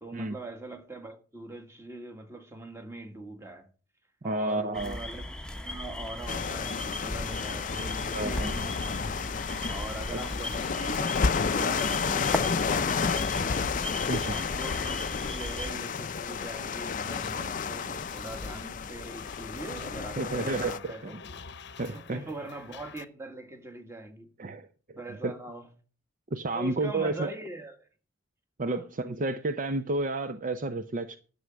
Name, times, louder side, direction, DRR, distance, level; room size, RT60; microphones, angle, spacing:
voice 1, 0.0-3.7 4.2-9.0 9.7-13.8 14.3-21.1 21.8-24.3 25.0-25.7 26.6-27.9 28.6-28.8, right 2 dB, 15° right, 1.8 m, -42 dB
voice 2, 4.2-5.0 8.1-8.5 10.1-10.2 14.1-14.5 20.2-21.2 21.8-22.3 24.4-25.0 25.2-25.3 26.3-27.3 28.6-31.2, right 2 dB, 40° right, 0.6 m, -31 dB
sound 1, 4.7-15.7, left 1 dB, 5° left, 1.0 m, -37 dB
sound 2, 6.3-20.8, left 5 dB, 40° left, 0.5 m, -31 dB
sound 3, 8.3-23.0, left 4 dB, 60° left, 0.8 m, -48 dB
11.5 x 6.9 x 6.3 m
head